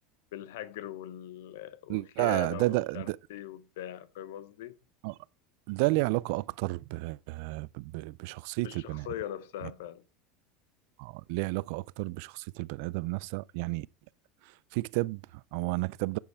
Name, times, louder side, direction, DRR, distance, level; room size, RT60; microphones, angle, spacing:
voice 1, 0.3-4.7 8.6-10.0, left 12 dB, 80° left, 0.9 m, -41 dB
voice 2, 1.9-3.2 5.0-5.2 5.7-9.1 9.6-9.7 11.0-13.9 14.4-16.2, right 22 dB, 70° right, 0.3 m, -31 dB
10.0 x 5.6 x 4.5 m
supercardioid pair, 115°, 0 cm